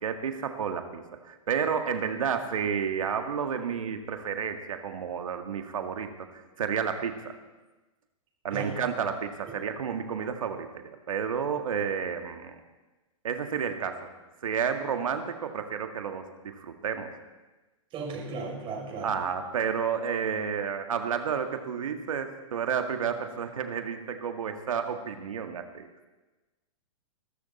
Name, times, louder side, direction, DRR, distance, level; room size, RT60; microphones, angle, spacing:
voice 1, 0.0-7.4 8.4-12.6 13.2-14.1 14.4-17.1 19.0-25.9, right 7 dB, 80° right, 6 dB, 1.8 m, -31 dB
voice 2, 17.9-19.1, right 4 dB, 30° right, 0 dB, 5.0 m, -35 dB
21.0 x 13.0 x 4.2 m, 1.2 s
hypercardioid pair, 120°, 17 cm